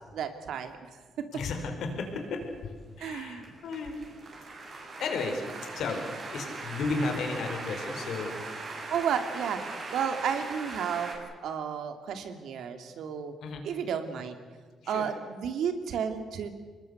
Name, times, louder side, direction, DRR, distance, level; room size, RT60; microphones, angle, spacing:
voice 1, 0.1-0.9 3.0-3.5 8.9-13.3 13.6-14.4 14.9-16.5, right 7 dB, 75° right, 8 dB, 2.7 m, -32 dB
voice 2, 1.3-4.0 5.0-8.7 13.4-13.6 14.8-15.1, left 3 dB, 70° left, 4 dB, 4.9 m, -34 dB
sound 1, 1.9-11.2, right 3 dB, 45° right, 6.7 m, -41 dB
25.0 x 20.5 x 8.2 m, 1.5 s
cardioid pair, 85°, 0 cm